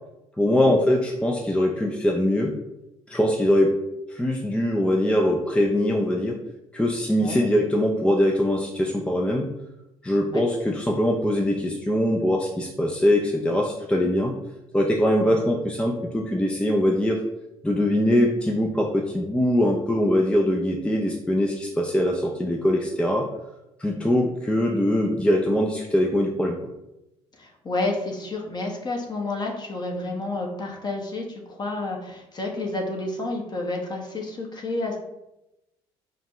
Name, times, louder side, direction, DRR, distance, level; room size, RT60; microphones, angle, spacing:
voice 1, 0.4-2.5 3.1-3.7 4.1-6.4 6.7-9.5 10.0-14.4 14.7-17.2 17.6-23.3 23.8-26.6, left 1 dB, 10° left, 1 dB, 0.5 m, -22 dB
voice 2, 27.4-35.0, left 2 dB, 30° left, 1 dB, 1.1 m, -30 dB
5.1 x 2.3 x 3.0 m, 0.91 s
hypercardioid pair, 60°, 14 cm